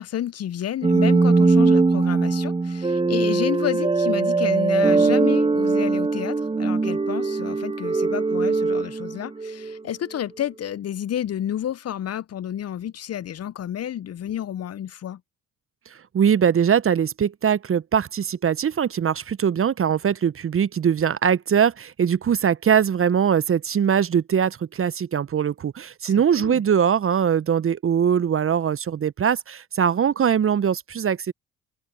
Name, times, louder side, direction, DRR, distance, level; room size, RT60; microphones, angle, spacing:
voice 1, 0.0-15.2 26.0-26.6, left 10 dB, 45° left, 0.9 m, -30 dB
sound 1, 0.8-9.8, right 3 dB, 15° right, 1.0 m, -21 dB
voice 2, 16.1-31.3, right 8 dB, 35° right, 1.0 m, -21 dB
open air
hypercardioid pair, 50°, 36 cm